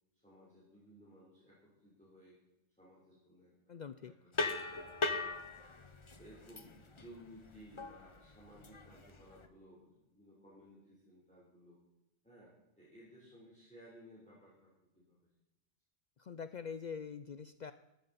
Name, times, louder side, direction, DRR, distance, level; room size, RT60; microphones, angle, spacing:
voice 1, 0.2-2.4 2.8-5.7 6.2-11.8 12.2-15.2, equal, 5° left, -7 dB, 3.4 m, -59 dB
voice 2, 3.7-4.1 16.2-17.7, left 6 dB, 70° left, 12 dB, 0.4 m, -44 dB
sound 1, 4.3-9.5, left 3 dB, 30° left, 0.8 m, -40 dB
13.5 x 13.0 x 4.1 m, 0.93 s
omnidirectional pair, 1.3 m